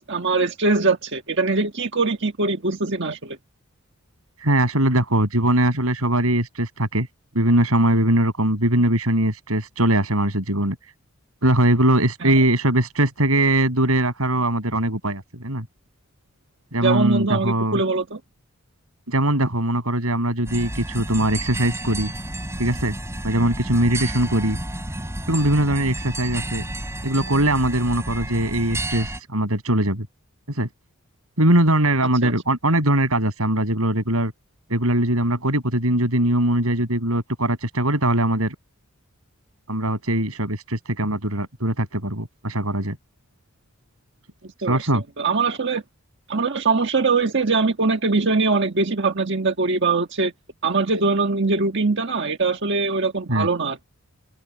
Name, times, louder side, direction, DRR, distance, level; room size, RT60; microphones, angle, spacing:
voice 1, 0.0-3.4 12.2-12.3 16.8-18.2 32.2-32.3 44.6-44.8 45.2-45.8 46.3-50.3 50.6-53.8, right 3 dB, 55° right, 1.6 m, -22 dB
voice 2, 4.4-7.1 7.4-10.8 11.4-15.7 16.7-17.8 19.1-22.1 22.6-22.9 23.2-24.6 25.3-26.6 27.0-30.1 30.5-30.7 31.4-34.3 34.7-38.6 39.7-43.0 44.7-45.0 53.3-53.5, right 1 dB, 80° right, 6.9 m, -21 dB
sound 1, 20.5-29.2, right 1 dB, 10° right, 6.0 m, -31 dB
open air
head